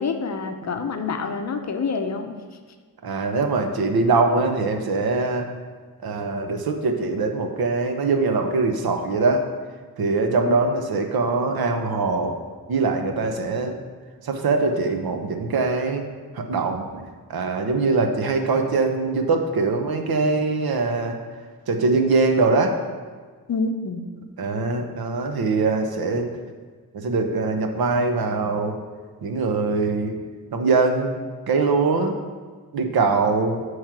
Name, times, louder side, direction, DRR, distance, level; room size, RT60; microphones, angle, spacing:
voice 1, 0.0-2.4 23.5-24.1, left 4 dB, 45° left, 6 dB, 0.6 m, -27 dB
voice 2, 3.0-5.5 6.0-9.4 10.0-12.3 12.7-13.7 14.2-16.1 16.3-17.0 17.3-21.2 21.7-22.7 24.4-26.4 26.9-28.8 29.2-30.1 30.5-31.2 31.5-32.2 32.7-33.7, right 3 dB, 75° right, 4 dB, 0.8 m, -22 dB
8.8 x 3.2 x 5.9 m, 1.5 s
wide cardioid pair, 140°, 37 cm